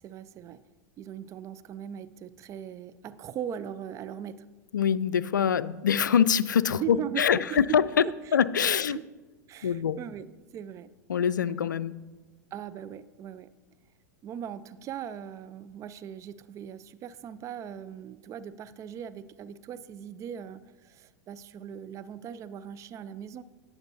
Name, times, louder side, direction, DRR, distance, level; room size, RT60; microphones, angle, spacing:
voice 1, 0.0-0.6 1.0-4.5 6.8-8.1 8.9-9.1 9.5-10.3 10.5-10.9 12.5-13.5 14.2-23.4, right 9 dB, 30° right, 14 dB, 0.4 m, -39 dB
voice 2, 4.7-7.8 8.3-9.0 9.6-10.0 11.1-12.0, left 8 dB, 85° left, 16 dB, 0.4 m, -24 dB
18.5 x 7.1 x 2.7 m, 1.2 s
hypercardioid pair, 90°, 10 cm